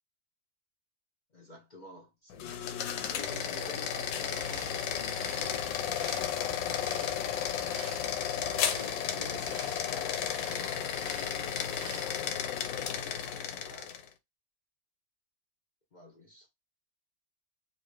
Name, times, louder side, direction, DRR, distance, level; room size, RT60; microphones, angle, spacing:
voice 1, 1.3-2.6 3.0-5.8 6.4-7.5 8.2-10.2 11.1-12.4 13.6-13.9 15.9-16.5, left 1 dB, 50° left, 0.5 m, -50 dB
sound 1, 2.3-14.1, left 9 dB, 75° left, 1.2 m, -33 dB
sound 2, 4.0-12.1, right 8 dB, 75° right, 1.0 m, -50 dB
sound 3, 4.1-9.5, right 3 dB, 45° right, 1.0 m, -52 dB
2.9 x 2.7 x 3.2 m
omnidirectional pair, 2.1 m